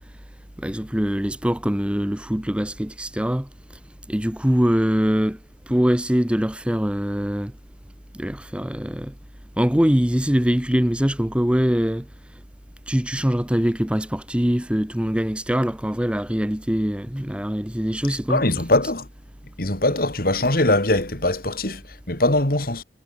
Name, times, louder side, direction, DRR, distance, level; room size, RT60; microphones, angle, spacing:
voice 1, 0.6-3.5 4.1-5.4 5.7-7.5 8.2-9.1 9.6-12.1 12.9-18.4, equal, 5° right, 0.9 m, -23 dB
voice 2, 18.3-19.1 19.6-22.8, left 2 dB, 55° left, 3.7 m, -21 dB
head